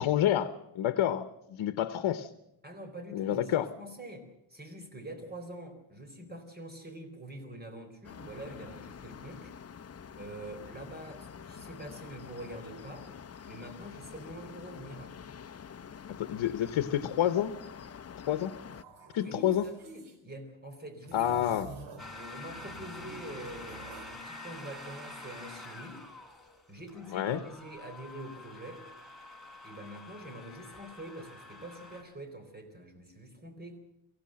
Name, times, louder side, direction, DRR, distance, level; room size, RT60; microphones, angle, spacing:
voice 1, 0.0-2.3 3.1-3.7 16.2-17.6 18.3-18.5 19.1-19.6 21.1-21.7 27.1-27.4, left 11 dB, 75° left, 11 dB, 1.1 m, -28 dB
voice 2, 2.6-9.5 10.2-13.1 13.5-15.1 19.2-21.5 22.1-26.1 26.7-28.9 29.6-33.8, right 1 dB, 20° right, 7 dB, 4.2 m, -45 dB
sound 1, 8.0-18.8, left 7 dB, 30° left, 0.8 m, -47 dB
sound 2, 18.7-20.2 21.0-22.2 22.5-24.2, right 3 dB, 85° right, 4.2 m, -49 dB
sound 3, 22.0-32.0, left 2 dB, ahead, 4.1 m, -47 dB
23.5 x 16.0 x 7.6 m, 0.84 s
cardioid pair, 130°, 47 cm